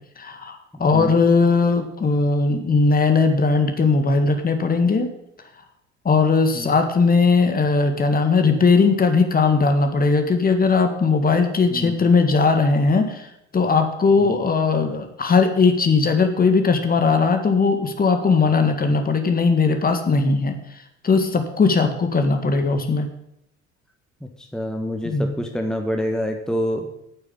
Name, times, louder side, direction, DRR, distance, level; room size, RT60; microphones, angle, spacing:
voice 1, 0.2-5.1 6.1-20.6 21.0-23.1 25.0-25.4, left 4 dB, 25° left, 6 dB, 1.9 m, -19 dB
voice 2, 0.7-1.2 6.5-6.7 11.7-12.0 14.2-14.3 24.4-27.0, equal, ahead, 4 dB, 1.5 m, -27 dB
9.4 x 9.0 x 8.8 m, 0.79 s
figure-of-eight pair, 60°, 35 cm